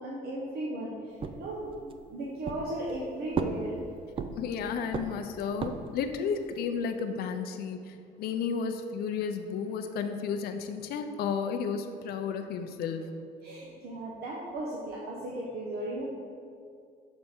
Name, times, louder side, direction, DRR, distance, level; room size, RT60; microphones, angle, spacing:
voice 1, 0.0-3.8 13.4-16.0, right 1 dB, 70° right, -4 dB, 0.9 m, -36 dB
sound 1, 1.2-2.0 2.5-3.0 3.3-4.6 4.9-6.0, right 5 dB, 30° right, 0.4 m, -34 dB
voice 2, 4.3-13.1, left 6 dB, 70° left, 7 dB, 0.5 m, -33 dB
6.5 x 3.5 x 4.3 m, 2.3 s
cardioid pair, 110°, 17 cm